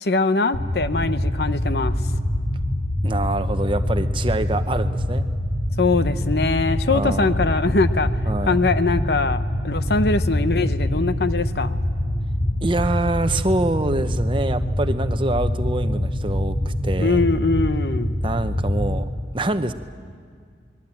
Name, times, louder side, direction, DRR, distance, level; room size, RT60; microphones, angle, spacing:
voice 1, 0.0-2.0 5.8-8.1 8.4-11.8 17.0-18.1, left 3 dB, 65° left, 11 dB, 0.8 m, -22 dB
sound 1, 0.5-19.0, left 1 dB, 45° left, 2.1 m, -24 dB
voice 2, 3.0-5.3 6.9-7.4 8.3-8.6 12.6-17.3 18.2-19.1 19.3-19.7, right 2 dB, 30° right, 9 dB, 0.8 m, -25 dB
28.5 x 21.0 x 9.0 m, 2.1 s
head